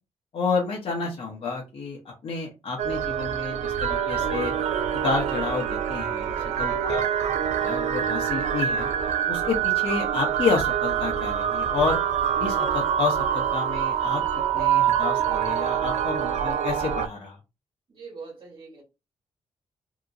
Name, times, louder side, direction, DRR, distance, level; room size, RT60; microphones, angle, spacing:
voice 1, 0.3-4.5 4.9-7.1 7.6-8.9 9.3-12.0 12.4-14.2 14.5-17.4, left 4 dB, 55° left, 0.8 m, -29 dB
sound 1, 2.8-17.1, right 9 dB, 80° right, 0.4 m, -25 dB
voice 2, 6.3-7.0 17.9-18.8, right 4 dB, 45° right, 1.5 m, -43 dB
2.8 x 2.6 x 2.5 m
wide cardioid pair, 150°, 12 cm